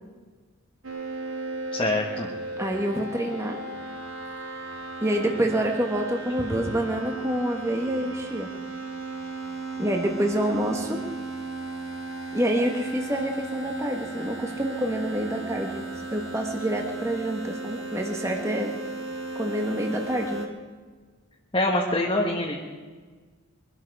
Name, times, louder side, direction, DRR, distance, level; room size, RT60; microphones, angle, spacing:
sound 1, 0.8-20.5, right 3 dB, 70° right, 2.0 m, -35 dB
voice 1, 1.7-2.3 21.5-22.6, left 1 dB, 25° left, -1 dB, 1.4 m, -25 dB
voice 2, 2.6-3.6 5.0-8.5 9.8-11.0 12.3-15.8 16.1-18.7 19.3-20.5, right 1 dB, 15° right, 2 dB, 1.4 m, -27 dB
23.0 x 13.0 x 4.8 m, 1.4 s
head